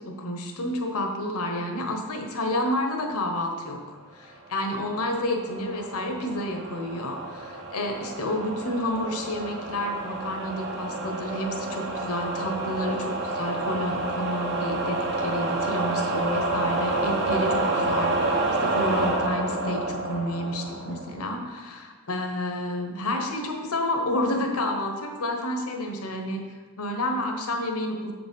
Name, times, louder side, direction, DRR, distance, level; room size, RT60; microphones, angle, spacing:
voice 1, 0.0-26.4 26.8-28.1, left 1 dB, 80° left, 3 dB, 1.1 m, -30 dB
sound 1, 4.9-21.3, right 2 dB, 50° right, 1.1 m, -29 dB
7.7 x 5.1 x 5.4 m, 1.4 s
head